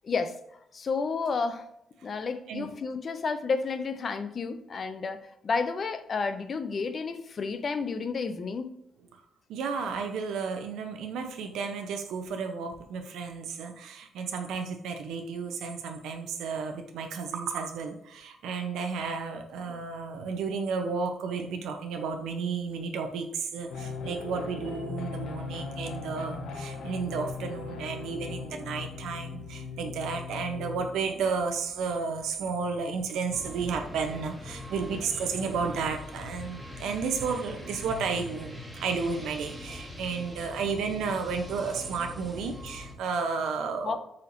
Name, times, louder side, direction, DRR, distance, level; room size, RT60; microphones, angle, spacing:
voice 1, 0.0-0.4 0.7-1.7 2.0-8.7 43.8-44.0, left 4 dB, 35° left, 10 dB, 0.4 m, -31 dB
voice 2, 9.5-44.0, right 5 dB, 90° right, 4 dB, 0.5 m, -32 dB
sound 1, 23.7-31.6, left 4 dB, 70° left, 0.6 m, -39 dB
sound 2, 33.3-42.9, left 2 dB, ahead, 0.7 m, -43 dB
4.2 x 4.0 x 2.5 m, 0.77 s
cardioid pair, 165°, 0 cm